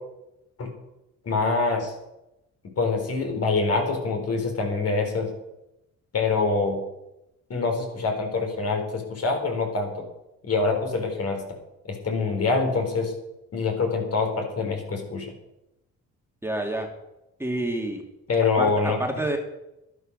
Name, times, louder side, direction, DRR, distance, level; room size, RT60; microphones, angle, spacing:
voice 1, 1.2-1.9 2.8-5.3 6.1-6.8 7.5-10.0 10.4-11.4 11.9-13.1 13.5-15.3 18.3-19.0, left 4 dB, 55° left, 3 dB, 4.5 m, -25 dB
voice 2, 16.4-16.9 17.4-18.0 18.6-19.4, right 1 dB, 10° right, 2 dB, 2.3 m, -28 dB
11.5 x 11.5 x 6.6 m, 0.91 s
cardioid pair, 90°, 30 cm